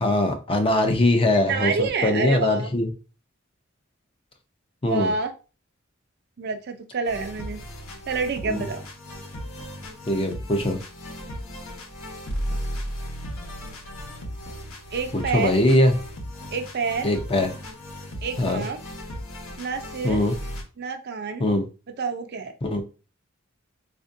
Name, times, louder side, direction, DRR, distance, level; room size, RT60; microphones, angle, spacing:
voice 1, 0.0-2.9 4.8-5.1 8.5-8.7 10.1-10.8 15.1-16.0 17.0-17.5 18.4-18.6 20.0-20.3 21.4-21.6 22.6-22.8, left 1 dB, 25° left, 5 dB, 0.6 m, -21 dB
voice 2, 1.4-2.7 4.8-5.3 6.4-7.6 8.1-8.9 11.2-11.3 14.9-15.6 16.5-17.1 18.2-18.8 19.6-20.2 20.8-21.5 22.0-22.5, right 4 dB, 50° right, 7 dB, 0.5 m, -28 dB
sound 1, 7.1-20.6, equal, 75° left, 1.0 m, -36 dB
4.3 x 2.5 x 2.5 m, 0.34 s
head